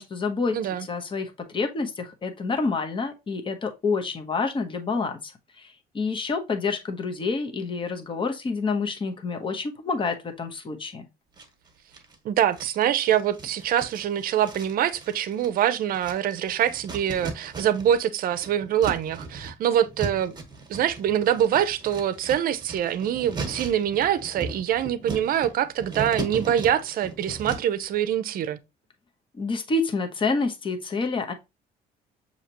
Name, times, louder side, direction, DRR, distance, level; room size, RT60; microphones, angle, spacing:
voice 1, 0.0-11.1 29.3-31.3, left 4 dB, 30° left, 0.9 m, -28 dB
voice 2, 0.5-0.9 12.2-20.4 20.7-28.6, right 10 dB, 60° right, 0.6 m, -24 dB
sound 1, 11.4-12.2 12.5-18.0 18.3-27.8, right 3 dB, 25° right, 1.2 m, -37 dB
6.5 x 2.8 x 2.8 m
cardioid pair, 110°, 17 cm